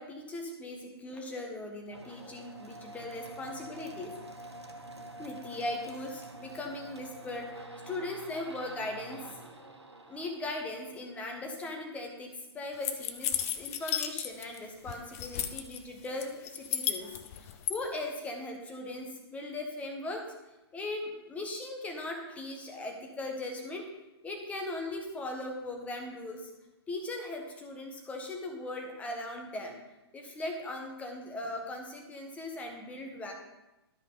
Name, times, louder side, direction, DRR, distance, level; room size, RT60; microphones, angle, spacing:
voice 1, 0.0-4.1 5.2-9.2 10.1-17.1 17.4-20.3 20.7-23.8 24.2-26.5 26.9-29.8 30.1-33.3, left 2 dB, 10° left, 2 dB, 1.2 m, -39 dB
sound 1, 1.9-11.4, right 1 dB, 85° right, 1.3 m, -47 dB
sound 2, 12.8-14.6 14.9-15.8 16.2-17.8, left 11 dB, 35° left, 0.6 m, -33 dB
12.0 x 5.3 x 3.9 m, 0.99 s
figure-of-eight pair, 125°, 14 cm